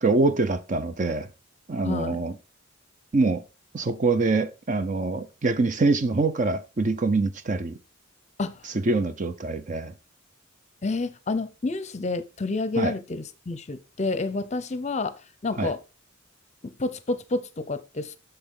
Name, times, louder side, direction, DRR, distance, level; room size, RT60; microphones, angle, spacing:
voice 1, 0.0-1.3 1.7-2.3 3.1-3.4 3.7-7.8 8.9-9.9 12.8-12.9 15.6-15.7, right 3 dB, 35° right, 0.6 m, -24 dB
voice 2, 1.8-2.2 8.4-8.7 10.8-15.8 16.6-18.2, left 3 dB, 35° left, 0.6 m, -29 dB
8.3 x 6.8 x 3.7 m
head